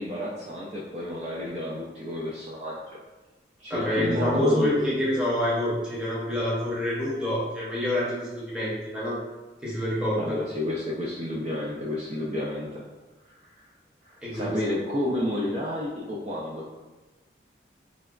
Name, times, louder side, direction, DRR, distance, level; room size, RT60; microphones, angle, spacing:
voice 1, 0.0-2.8 3.6-5.0 10.1-12.8 13.3-13.7 14.0-16.7, left 1 dB, 35° right, -5 dB, 0.3 m, -31 dB
voice 2, 3.7-9.2 9.6-10.4 14.2-14.5, left 1 dB, 5° right, -8 dB, 0.7 m, -27 dB
3.8 x 2.1 x 2.4 m, 1.2 s
head